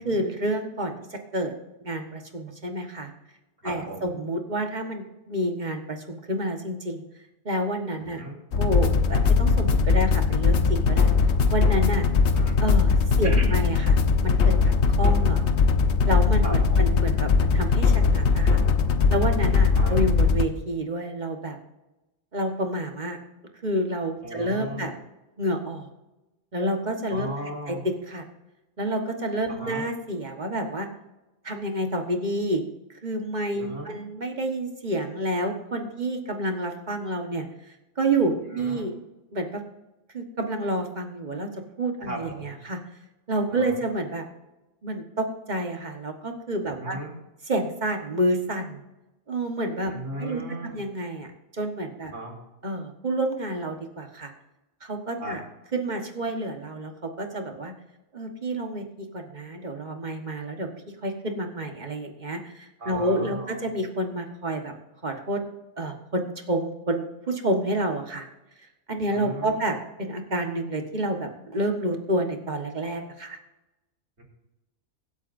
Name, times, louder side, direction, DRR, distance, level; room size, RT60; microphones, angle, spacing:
voice 1, 0.0-1.5 1.8-3.1 3.6-7.0 7.4-8.2 8.6-11.1 11.5-12.1 12.6-14.0 14.2-15.4 16.1-18.6 19.1-21.6 22.3-23.2 23.6-24.9 25.4-25.9 26.5-27.3 27.7-28.2 28.8-30.9 31.4-32.6 33.0-38.9 39.3-39.6 40.1-42.8 43.3-44.2 44.8-47.0 47.5-48.8 49.3-49.9 50.2-52.1 52.6-54.3 54.8-55.4 55.7-57.7 58.1-60.7 61.0-64.7 65.0-65.4 65.8-68.3 68.9-73.4, right 1 dB, 40° right, 4 dB, 1.4 m, -29 dB
voice 2, 3.6-4.2 8.0-8.4 12.2-12.6 13.2-13.6 16.4-17.0 19.6-20.0 24.2-24.9 27.1-27.8 29.5-29.9 33.6-34.0 38.5-38.9 42.1-42.6 43.5-43.8 46.7-47.2 49.9-50.9 52.1-52.4 55.2-55.4 62.8-63.7 69.1-69.7 74.2-74.3, right 1 dB, 60° right, -1 dB, 3.2 m, -37 dB
sound 1, 8.5-20.4, left 5 dB, 65° left, 1.1 m, -20 dB
24.0 x 8.2 x 2.6 m, 1.0 s
omnidirectional pair, 1.3 m